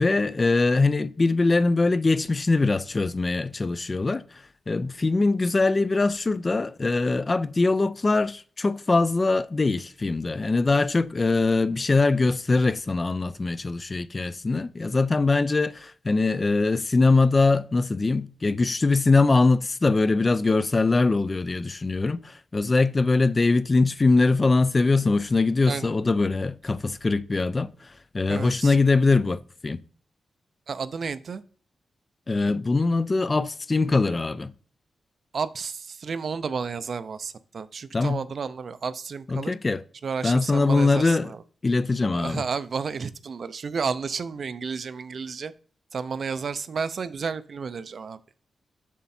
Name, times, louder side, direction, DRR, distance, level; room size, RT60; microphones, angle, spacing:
voice 1, 0.0-29.8 32.3-34.5 37.9-38.2 39.3-39.8 40.2-41.3 41.6-42.4, left 3 dB, 25° left, 0.3 m, -22 dB
voice 2, 28.3-28.7 30.7-31.4 35.3-39.5 40.0-41.4 42.1-45.5 45.9-48.2, right 5 dB, 50° right, 0.5 m, -32 dB
7.3 x 6.6 x 4.2 m
wide cardioid pair, 165°, 0 cm